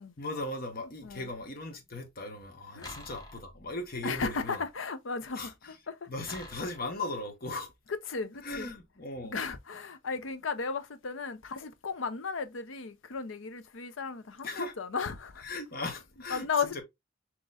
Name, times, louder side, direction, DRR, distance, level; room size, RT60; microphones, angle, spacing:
voice 1, 0.2-4.6 5.3-5.7 6.1-7.7 8.4-9.4 14.4-14.7 15.4-16.8, left 2 dB, 50° left, 1.2 m, -38 dB
sound 1, 2.8-4.0 6.3-7.0, left 1 dB, 20° left, 1.0 m, -47 dB
voice 2, 4.0-6.1 8.1-8.7 9.2-15.4 16.3-16.8, left 5 dB, 80° left, 0.6 m, -35 dB
6.1 x 3.0 x 2.4 m
head